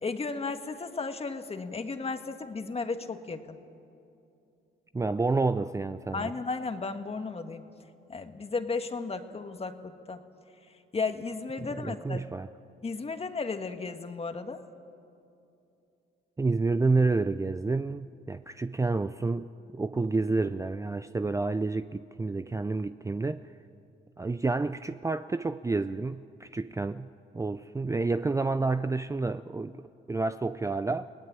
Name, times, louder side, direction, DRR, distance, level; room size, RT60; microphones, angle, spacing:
voice 1, 0.0-3.6 6.1-7.6 8.1-10.2 10.9-12.2 12.8-14.6, left 4 dB, 30° left, 7 dB, 1.7 m, -34 dB
voice 2, 4.9-6.3 11.6-12.5 16.4-23.5 24.2-31.1, right 3 dB, 15° right, 11 dB, 0.5 m, -29 dB
30.0 x 18.5 x 8.9 m, 2.7 s
cardioid pair, 90°, 20 cm